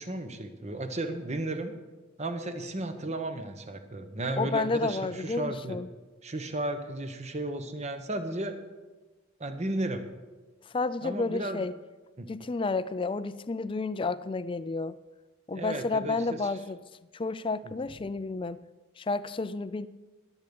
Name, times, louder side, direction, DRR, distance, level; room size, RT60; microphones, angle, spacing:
voice 1, 0.0-1.7 2.2-5.8 6.2-8.6 9.4-10.0 11.0-11.7 12.2-12.3 15.5-16.5 17.6-17.7, right 1 dB, 35° right, 8 dB, 1.1 m, -34 dB
voice 2, 4.4-5.9 10.7-11.7 12.3-15.0 15.5-16.8 17.1-18.6 19.0-19.9, left 3 dB, 25° left, 15 dB, 0.4 m, -31 dB
21.5 x 8.1 x 5.3 m, 1.2 s
head